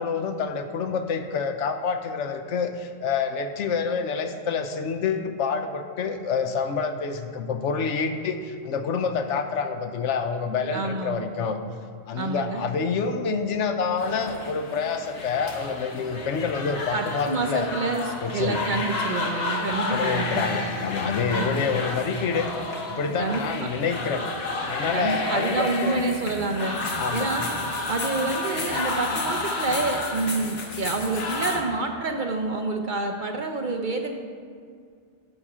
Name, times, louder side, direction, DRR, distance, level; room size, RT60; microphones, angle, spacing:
voice 1, 0.0-11.6 12.1-17.7 18.2-18.6 19.9-22.5 22.9-26.0 27.0-27.3, left 5 dB, 75° left, 7 dB, 1.0 m, -27 dB
voice 2, 10.7-11.2 12.2-12.7 16.9-20.6 21.3-21.6 23.2-23.7 24.9-26.8 27.1-27.5 27.9-34.1, right 3 dB, 50° right, 4 dB, 0.7 m, -28 dB
sound 1, 14.0-31.6, left 2 dB, 60° left, 1.2 m, -31 dB
11.5 x 5.8 x 4.9 m, 2.1 s
omnidirectional pair, 1.2 m